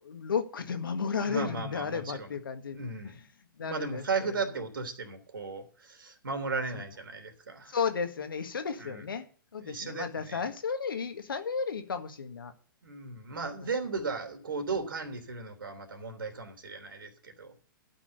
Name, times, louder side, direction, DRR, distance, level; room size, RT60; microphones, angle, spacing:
voice 1, 0.0-3.3 3.6-4.4 6.7-6.8 7.7-9.3 9.5-12.5, left 6 dB, 75° left, 1.8 m, -34 dB
voice 2, 1.2-2.3 2.7-3.1 3.6-7.8 8.8-9.0 9.6-10.4 12.8-17.5, right 4 dB, 75° right, 3.2 m, -36 dB
12.5 x 6.1 x 8.2 m
figure-of-eight pair, 115°, 12 cm